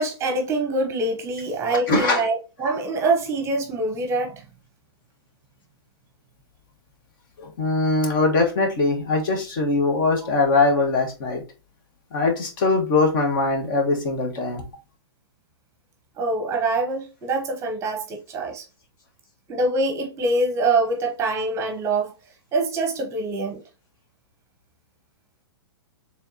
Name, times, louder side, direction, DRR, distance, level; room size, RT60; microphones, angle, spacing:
voice 1, 0.0-4.4 16.2-18.6 19.5-22.1 22.5-23.6, right 2 dB, 20° right, 0.8 m, -24 dB
voice 2, 1.7-2.2 7.4-11.4 12.1-14.6, left 3 dB, 50° left, 1.5 m, -21 dB
4.3 x 3.4 x 2.7 m
hypercardioid pair, 140°, 14 cm